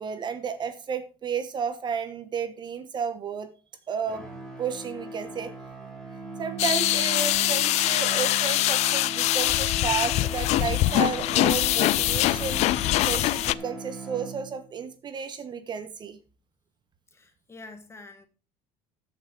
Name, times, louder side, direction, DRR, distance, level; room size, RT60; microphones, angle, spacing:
voice 1, 0.0-3.5 3.9-4.3 4.6-5.5 6.4-12.6 13.0-16.2, right 6 dB, 35° right, 1.2 m, -32 dB
sound 1, 4.0-14.8, right 2 dB, ahead, 4.1 m, -38 dB
sound 2, 6.6-13.5, left 16 dB, 55° left, 0.5 m, -23 dB
voice 2, 17.1-18.3, left 3 dB, 20° left, 2.0 m, -46 dB
13.5 x 5.8 x 4.7 m
cardioid pair, 120°, 13 cm